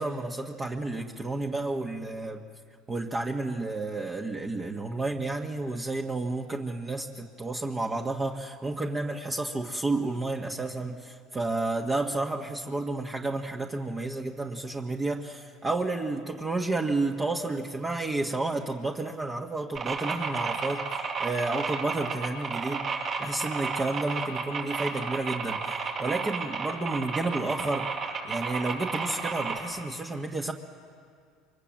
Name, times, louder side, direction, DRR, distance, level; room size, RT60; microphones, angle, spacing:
voice 1, 0.0-2.4 2.9-22.9 23.2-25.7 26.0-27.9 28.2-30.5, right 2 dB, 25° right, 1 dB, 1.6 m, -31 dB
sound 1, 19.7-29.6, right 5 dB, 45° right, 6.5 m, -32 dB
27.5 x 24.0 x 7.7 m, 2.2 s
supercardioid pair, 90°, 0 cm